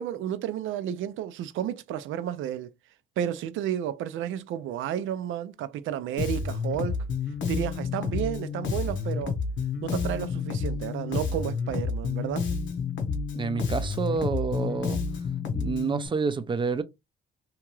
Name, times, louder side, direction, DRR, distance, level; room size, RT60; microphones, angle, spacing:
voice 1, 0.0-2.7 3.2-7.0 7.4-9.4 9.8-12.5, right 10 dB, 80° right, 0.4 m, -32 dB
Bass guitar, 6.2-16.1, left 5 dB, 70° left, 0.8 m, -30 dB
voice 2, 13.3-15.0 15.5-16.8, right 5 dB, 25° right, 0.5 m, -28 dB
2.8 x 2.3 x 3.0 m
cardioid pair, 90°, 20 cm